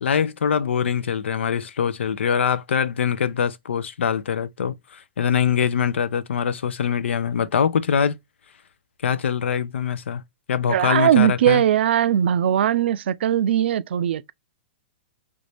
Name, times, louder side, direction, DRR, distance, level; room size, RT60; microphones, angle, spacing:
voice 1, 0.0-8.2 9.0-10.2 10.5-11.6, left 7 dB, 85° left, 0.5 m, -23 dB
voice 2, 10.7-14.3, right 10 dB, 65° right, 0.3 m, -20 dB
3.1 x 2.6 x 3.3 m
hypercardioid pair, 145°, 6 cm